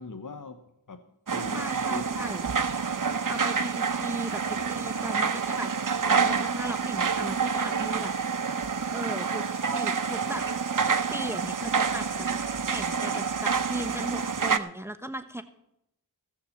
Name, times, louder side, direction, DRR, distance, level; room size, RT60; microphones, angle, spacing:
voice 1, 0.0-2.3, left 3 dB, 50° left, 0.9 m, -42 dB
sound 1, 1.3-14.6, right 5 dB, 50° right, 0.8 m, -28 dB
voice 2, 1.5-2.4 3.3-5.7 6.0-8.1 8.9-10.4 10.8-12.1 12.7-15.4, right 1 dB, 5° right, 1.0 m, -37 dB
16.0 x 7.0 x 7.0 m
wide cardioid pair, 40°, 40 cm